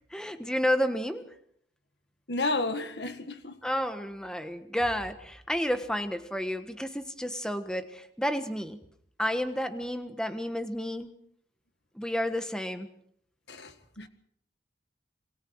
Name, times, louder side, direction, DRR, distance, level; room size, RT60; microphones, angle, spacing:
voice 1, 0.1-1.3 3.6-8.8 9.2-11.1 11.9-12.9, equal, 5° left, 1.3 m, -31 dB
voice 2, 2.3-3.6 13.5-14.1, left 2 dB, 65° left, 1.7 m, -32 dB
27.0 x 23.5 x 4.8 m
head